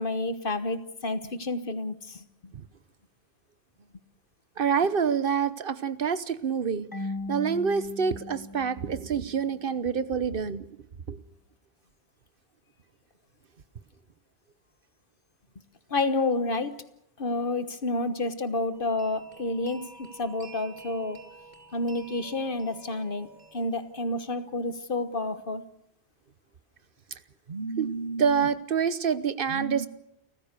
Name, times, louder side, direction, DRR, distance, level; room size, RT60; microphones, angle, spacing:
voice 1, 0.0-2.5 15.9-16.8 17.2-21.2 21.7-25.7, left 2 dB, 55° left, 1.4 m, -30 dB
voice 2, 4.6-6.9 7.3-10.7 11.1-11.2 27.5-29.9, right 6 dB, 60° right, 1.2 m, -27 dB
Marimba xylophone / Wood, 6.9-9.7, left 2 dB, 20° left, 1.2 m, -38 dB
sound 1, 18.7-24.4, right 3 dB, 45° right, 3.0 m, -50 dB
29.5 x 15.0 x 6.7 m
omnidirectional pair, 1.1 m